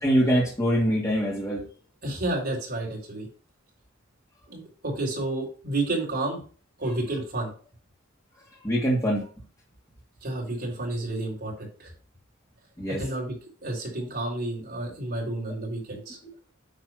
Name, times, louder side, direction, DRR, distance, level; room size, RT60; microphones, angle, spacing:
voice 1, 0.0-1.7 8.6-9.3 12.8-13.0, equal, 15° left, -6 dB, 1.8 m, -24 dB
voice 2, 2.0-3.3 4.5-6.4 6.8-7.5 10.2-11.9 13.0-13.3 13.6-16.2, right 2 dB, 50° right, -2 dB, 3.5 m, -30 dB
9.4 x 3.3 x 6.1 m, 0.39 s
head